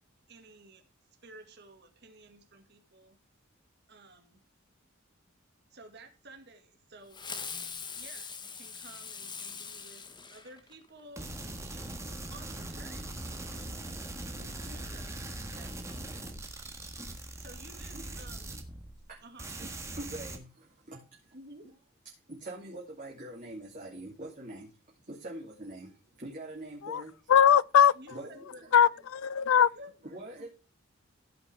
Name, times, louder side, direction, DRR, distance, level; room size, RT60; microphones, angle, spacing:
voice 1, 0.3-0.8 1.2-3.2 3.9-4.4 5.7-7.5 7.9-11.3 12.3-13.9 14.4-15.1 15.4-16.3 17.4-18.5 19.2-19.5 21.3-21.7 28.0-29.0 29.7-29.9, right 2 dB, 55° right, 2.0 m, -53 dB
Fireworks, 7.1-11.0, left 5 dB, 20° left, 1.1 m, -42 dB
sound 1, 11.2-19.1 19.4-20.4, right 1 dB, 15° right, 1.5 m, -41 dB
voice 2, 19.6-21.3 22.3-24.7 25.0-27.1 28.1-28.7 30.0-30.5, right 1 dB, 40° right, 2.8 m, -44 dB
voice 3, 27.3-27.9 28.7-29.7, left 8 dB, 90° left, 0.4 m, -21 dB
16.0 x 6.0 x 3.4 m
head